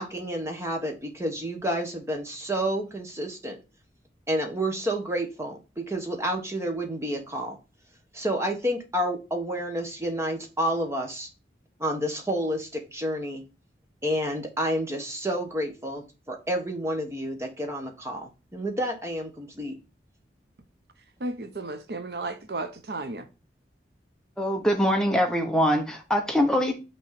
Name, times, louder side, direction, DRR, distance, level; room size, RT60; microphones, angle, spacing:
voice 1, 0.0-3.6 4.3-7.6 8.1-11.3 11.8-13.4 14.0-19.8, equal, 15° right, 1.4 m, -30 dB
voice 2, 21.2-23.3, right 2 dB, 65° right, 0.8 m, -34 dB
voice 3, 24.4-26.8, equal, 5° left, 1.0 m, -23 dB
6.2 x 3.3 x 5.9 m
head